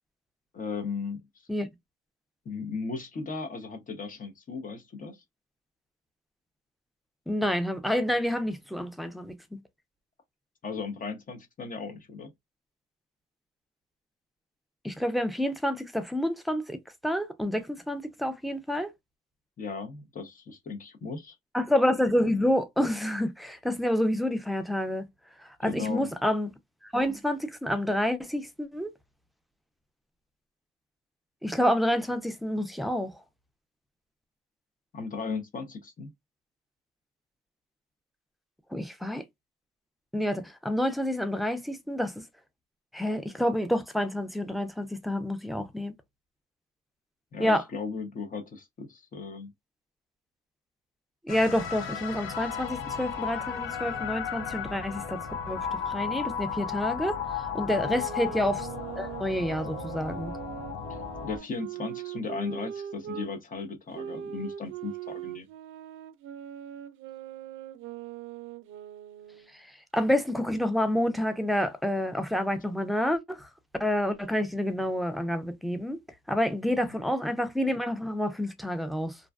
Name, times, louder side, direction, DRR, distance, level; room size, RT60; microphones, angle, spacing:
voice 1, 0.5-1.2 2.4-5.2 10.6-12.3 19.6-21.4 25.6-26.1 34.9-36.1 47.3-49.5 57.7-58.0 60.9-61.0 61.2-65.5, left 4 dB, 45° left, 0.7 m, -36 dB
voice 2, 7.3-9.6 14.8-18.9 21.5-25.1 25.4-26.5 26.8-28.9 31.4-33.2 38.7-39.2 40.1-42.1 42.9-45.9 47.4-47.6 51.2-57.2 57.5-58.7 59.0-60.3 69.9-73.5 73.8-76.0 76.3-79.2, left 1 dB, ahead, 0.4 m, -28 dB
sound 1, 51.3-61.4, left 7 dB, 80° left, 0.6 m, -34 dB
sound 2, 57.8-63.3 63.9-69.5, right 10 dB, 80° right, 0.4 m, -41 dB
2.5 x 2.2 x 2.3 m
cardioid pair, 90°, 20 cm